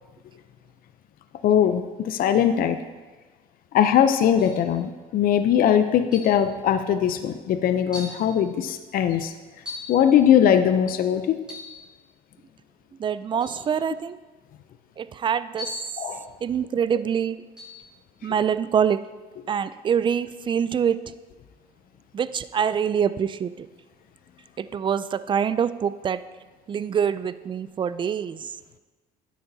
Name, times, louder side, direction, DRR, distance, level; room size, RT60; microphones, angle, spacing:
voice 1, 1.4-2.8 3.7-9.3 9.9-11.4 16.0-16.2, left 9 dB, 60° left, 9 dB, 0.5 m, -20 dB
sound 1, 4.4-4.7 6.1-6.4 7.2-7.3 7.9-8.2 9.7-10.0 11.4-11.8 13.4-13.6 15.6-16.0 17.6-17.8, left 3 dB, 5° right, 2.6 m, -38 dB
voice 2, 13.0-14.2 15.0-15.7 16.4-17.4 18.2-19.0 19.5-21.0 22.1-23.7 24.6-26.2 26.7-28.5, right 8 dB, 30° right, 14 dB, 0.4 m, -25 dB
12.5 x 9.4 x 2.7 m, 1.3 s
cardioid pair, 110°, 17 cm